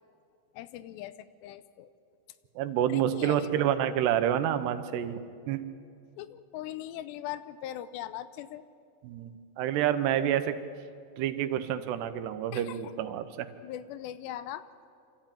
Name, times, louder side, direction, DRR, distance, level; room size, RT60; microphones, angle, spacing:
voice 1, 0.5-1.9 2.9-3.7 6.2-8.6 12.5-12.9 13.6-14.7, left 12 dB, 85° left, 14 dB, 2.9 m, -40 dB
voice 2, 2.6-5.2 5.5-5.6 9.0-10.6 11.2-13.5, right 10 dB, 80° right, 10 dB, 2.9 m, -28 dB
25.0 x 13.5 x 8.9 m, 2.4 s
omnidirectional pair, 4.9 m